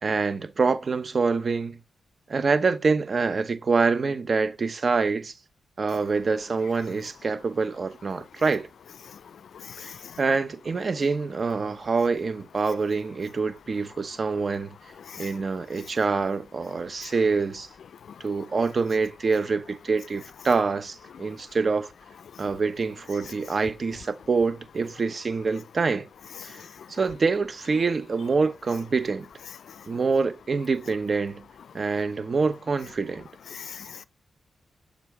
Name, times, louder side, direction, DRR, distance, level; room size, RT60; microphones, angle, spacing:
voice 1, 0.0-1.8 2.3-5.3 5.8-8.7 9.8-9.9 10.2-14.8 15.2-17.7 18.2-21.9 22.4-26.1 26.4-26.6 26.9-29.3 29.9-31.4 31.7-33.3, right 4 dB, 50° right, 0.9 m, -26 dB
voice 2, 9.5-10.2 15.0-15.3 17.0-17.1 22.3-22.4 26.5-26.9 29.7-29.9 33.5-34.0, left 7 dB, 75° left, 0.4 m, -42 dB
7.0 x 3.5 x 4.7 m
cardioid pair, 65°, 0 cm